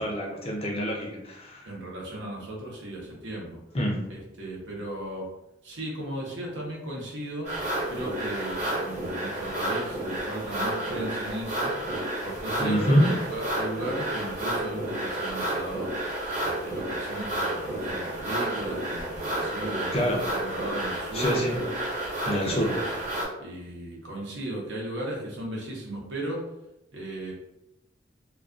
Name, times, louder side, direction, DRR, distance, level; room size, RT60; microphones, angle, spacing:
voice 1, 0.0-1.7 3.7-4.0 12.6-13.1 19.9-20.2 21.1-21.5 22.2-22.7, equal, 30° left, -1 dB, 0.5 m, -26 dB
voice 2, 1.6-3.6 4.1-5.3 5.6-7.5 7.9-11.7 12.2-15.9 16.4-21.5 22.3-22.9 23.4-26.4 26.9-27.3, right 1 dB, 75° right, -2 dB, 0.8 m, -36 dB
sound 1, 7.4-23.3, right 1 dB, 35° right, 1.0 m, -31 dB
2.3 x 2.2 x 2.4 m, 0.88 s
head